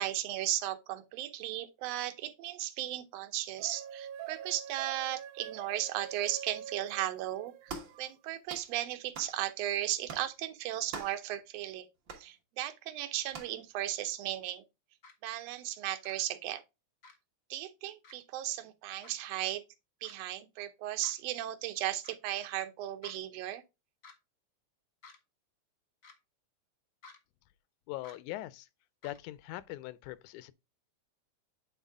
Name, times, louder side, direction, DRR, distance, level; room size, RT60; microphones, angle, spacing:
voice 1, 0.0-11.9 12.2-14.6 15.2-16.6 17.5-19.6 20.0-23.6, right 13 dB, 70° right, 1.8 m, -36 dB
sound 1, 3.6-8.1, right 9 dB, 85° right, 1.4 m, -45 dB
sound 2, 7.7-8.0 8.5-8.7 9.1-9.4 10.1-10.3 10.9-11.2 12.1-12.3 13.3-13.6, right 4 dB, 55° right, 1.5 m, -43 dB
sound 3, 15.0-15.1 16.0-16.1 17.0-17.2 18.0-18.1 19.0-19.1 20.0-20.1 21.0-21.2 22.0-22.1 23.0-23.2 24.0-24.1 25.0-25.2 26.0-26.2 27.0-27.2 28.0-28.2 29.0-29.2, left 4 dB, 50° left, 1.0 m, -53 dB
voice 2, 27.9-28.7 29.0-30.5, left 16 dB, 90° left, 2.0 m, -41 dB
8.1 x 4.2 x 3.5 m
omnidirectional pair, 3.4 m